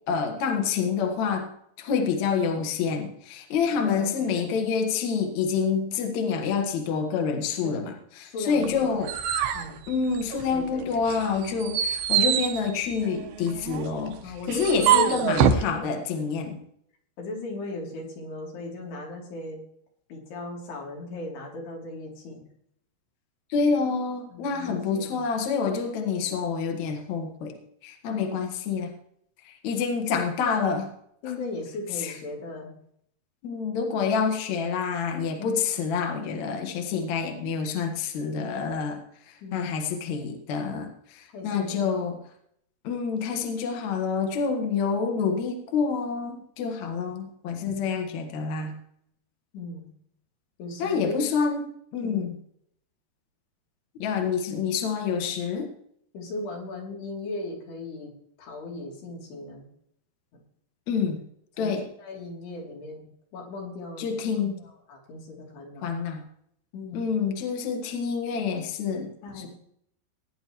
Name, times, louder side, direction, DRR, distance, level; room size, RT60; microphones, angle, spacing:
voice 1, 0.1-1.5 1.8-9.1 9.9-16.6 23.5-28.9 29.5-30.9 32.0-32.1 33.4-39.0 39.3-42.2 42.8-48.7 50.8-51.7 51.9-52.4 54.0-55.7 60.9-61.2 61.6-61.8 64.0-64.6 65.8-66.2 66.9-69.1 69.4-69.5, left 5 dB, 55° left, 4 dB, 2.4 m, -27 dB
voice 2, 3.8-4.5 7.6-8.0 8.2-9.1 9.5-9.8 10.5-11.1 14.2-16.3 17.2-19.6 20.1-22.4 24.3-25.2 28.1-28.5 30.4-30.5 31.2-32.7 35.4-35.7 36.9-37.4 39.4-39.7 41.3-42.1 49.5-49.9 50.6-51.2 52.0-52.3 54.3-54.5 55.2-55.4 56.1-58.1 58.4-59.7 60.3-60.4 61.6-63.1 63.3-65.9 66.7-67.1 69.2-69.5, left 2 dB, 85° left, -2 dB, 5.3 m, -37 dB
sound 1, 8.6-10.6 11.0-15.7, right 9 dB, 75° right, 2.9 m, -25 dB
19.5 x 10.5 x 3.1 m, 0.70 s
omnidirectional pair, 4.6 m